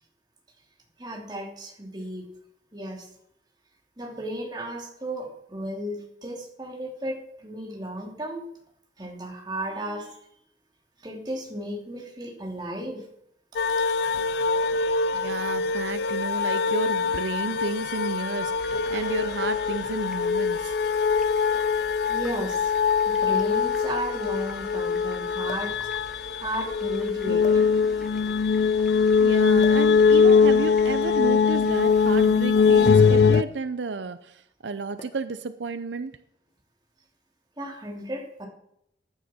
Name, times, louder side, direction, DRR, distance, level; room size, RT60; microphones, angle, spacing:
voice 1, 1.0-2.3 2.7-3.1 4.0-8.5 9.0-10.2 11.0-13.0 14.0-14.1 22.1-22.7 23.0-25.8 26.4-27.6 37.6-38.5, right 1 dB, 25° right, 0 dB, 2.8 m, -34 dB
sound 1, 13.6-33.4, left 5 dB, 65° left, 0.4 m, -22 dB
voice 2, 15.1-20.7 29.2-36.1, right 4 dB, 85° right, 12 dB, 0.6 m, -32 dB
sound 2, 18.6-32.4, equal, 5° right, 1.4 m, -47 dB
sound 3, 22.9-23.0 23.3-23.4 25.4-25.8 26.7-26.9 27.4-28.1 29.6-29.9 31.1-32.7 33.3-33.7 33.9-34.2 35.0-35.4 36.3-36.6, left 2 dB, 40° left, 1.0 m, -43 dB
15.0 x 9.5 x 4.4 m, 0.74 s
head